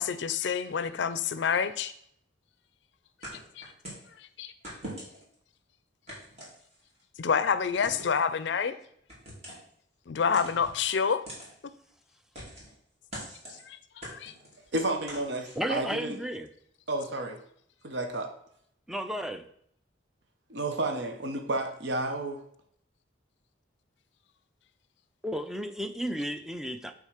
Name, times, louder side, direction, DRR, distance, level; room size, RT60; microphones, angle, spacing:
voice 1, 0.0-1.9 3.6-3.7 4.2-4.5 7.2-8.8 10.1-11.2 13.5-13.8 14.1-14.3, left 6 dB, 65° left, 13 dB, 0.4 m, -28 dB
sound 1, 3.2-4.1 4.6-5.3 6.1-7.0 7.7-8.2 9.1-9.7 10.3-10.8 11.3-11.5 12.3-12.7 13.1-13.6 14.0-15.9, right 1 dB, 35° right, 2.6 m, -43 dB
voice 2, 14.7-16.2 16.9-17.4 17.8-18.3 20.5-22.4, right 2 dB, 65° right, 4 dB, 0.8 m, -31 dB
voice 3, 15.6-16.5 18.9-19.4 25.2-26.9, equal, ahead, 7 dB, 0.4 m, -33 dB
8.5 x 3.6 x 5.0 m, 0.68 s
head